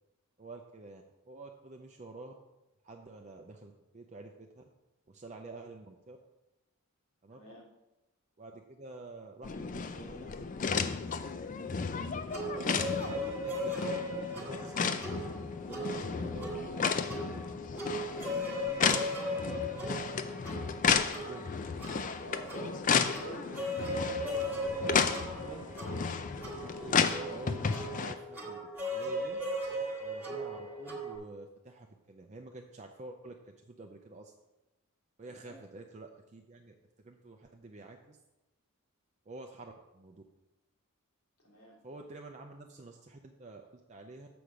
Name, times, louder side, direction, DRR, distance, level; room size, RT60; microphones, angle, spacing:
voice 1, 0.4-2.3 2.8-4.6 5.1-6.2 7.2-7.4 8.4-10.3 11.7-11.8 12.3-13.8 14.1-14.9 15.7-17.4 18.5-18.8 21.1-21.5 25.2-25.6 25.9-26.0 26.8-29.4 30.0-34.3 35.2-36.8 37.0-38.2 39.3-40.2 41.8-44.3, right 2 dB, 30° right, 3 dB, 0.5 m, -49 dB
voice 2, 7.3-7.7 22.2-25.6 35.2-35.6 41.4-41.8, equal, 85° left, -4 dB, 2.6 m, -49 dB
sound 1, 9.4-28.1, left 5 dB, 35° left, 0.4 m, -33 dB
sound 2, 12.3-31.2, equal, 10° right, 1.4 m, -38 dB
Wind instrument woodwind instrument, 24.4-28.1, right 3 dB, 60° left, 1.5 m, -57 dB
7.0 x 6.3 x 5.0 m, 1.0 s
head